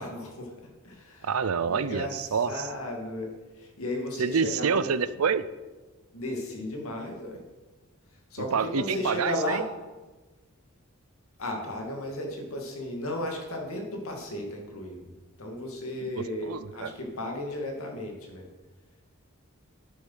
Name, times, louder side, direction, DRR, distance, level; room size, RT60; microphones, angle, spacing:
voice 1, 0.0-1.3 1.7-5.0 6.1-7.4 8.3-9.6 11.4-15.1 15.4-18.5, left 1 dB, 80° left, 1 dB, 2.3 m, -35 dB
voice 2, 1.2-2.7 4.2-5.4 8.4-9.6 16.0-16.9, right 6 dB, 85° right, 14 dB, 0.5 m, -27 dB
10.5 x 8.1 x 5.7 m, 1.2 s
head